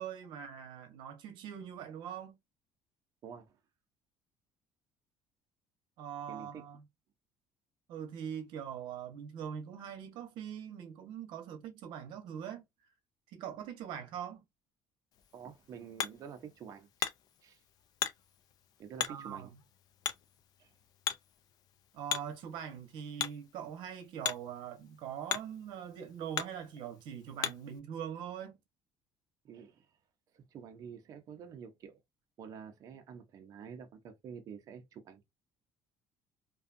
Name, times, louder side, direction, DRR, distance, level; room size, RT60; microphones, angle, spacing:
voice 1, 0.0-2.4 6.0-6.8 7.9-12.6 13.3-14.4 19.1-19.5 21.9-28.6, right 8 dB, 70° right, 0.8 m, -42 dB
voice 2, 3.2-3.6 6.3-6.6 15.3-16.9 17.4-17.6 18.8-19.5 20.6-20.7 29.4-29.9 30.3-32.0 32.4-35.2, right 7 dB, 45° right, 0.6 m, -48 dB
Hammer, 15.1-27.8, left 10 dB, 50° left, 0.4 m, -41 dB
2.5 x 2.3 x 2.4 m
cardioid pair, 160°, 8 cm